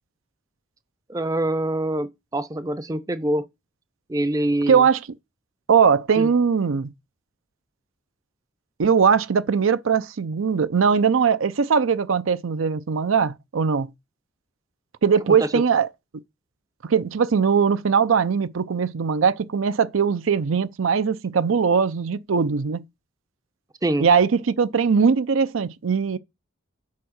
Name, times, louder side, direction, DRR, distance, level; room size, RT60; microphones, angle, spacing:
voice 1, 1.1-3.4 4.1-4.8 6.2-6.3 15.3-15.6 23.8-24.1, right 1 dB, 15° right, 0.5 m, -25 dB
voice 2, 4.7-5.0 5.7-6.9 8.8-13.9 15.0-15.9 16.8-22.8 24.0-26.2, right 6 dB, 80° right, 0.5 m, -20 dB
7.4 x 4.4 x 6.3 m
head